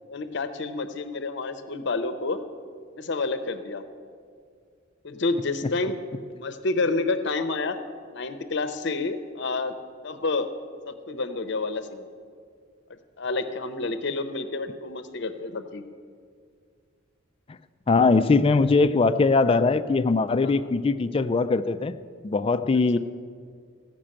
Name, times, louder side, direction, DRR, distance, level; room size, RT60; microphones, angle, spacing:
voice 1, 0.1-2.4 2.9-3.8 5.0-6.0 6.3-7.8 8.1-9.7 10.0-10.5 10.9-12.0 13.2-15.8 20.4-20.5, left 3 dB, 60° left, 9 dB, 0.7 m, -29 dB
voice 2, 17.9-21.9 22.2-23.0, left 3 dB, 30° left, 12 dB, 0.3 m, -21 dB
15.0 x 6.0 x 8.7 m, 2.2 s
head